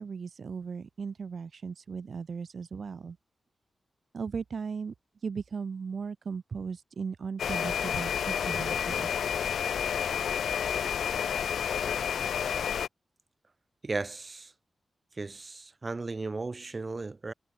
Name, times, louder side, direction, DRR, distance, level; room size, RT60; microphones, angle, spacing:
voice 1, 0.0-3.2 4.1-4.9 5.2-9.2, right 5 dB, 65° right, 1.3 m, -37 dB
sound 1, 7.4-12.9, left 8 dB, 85° left, 0.6 m, -30 dB
voice 2, 13.8-14.5 15.2-17.3, right 3 dB, 40° right, 3.5 m, -35 dB
cardioid pair, 50°, 0 cm